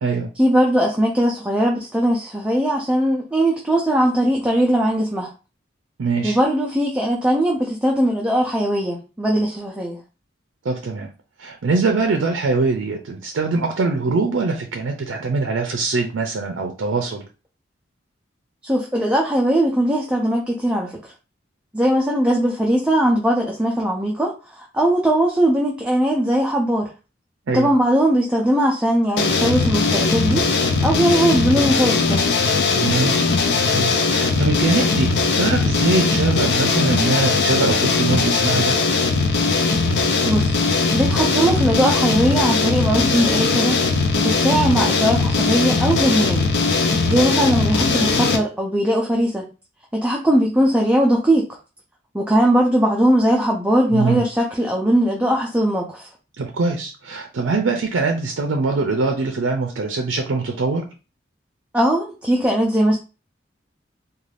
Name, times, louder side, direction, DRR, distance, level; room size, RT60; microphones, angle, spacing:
voice 1, 0.4-5.3 6.2-10.0 18.6-21.1 21.7-26.9 27.5-32.3 40.3-40.6 40.9-46.5 47.1-49.5 49.9-51.5 52.1-56.1 61.7-63.0, right 1 dB, 5° right, 0.4 m, -19 dB
voice 2, 6.0-6.4 10.6-11.1 11.4-17.3 27.5-27.7 32.8-38.8 53.9-54.2 56.4-60.9, right 3 dB, 80° right, 0.4 m, -23 dB
sound 1, 29.2-48.4, left 4 dB, 60° left, 0.4 m, -19 dB
2.4 x 2.3 x 3.2 m
head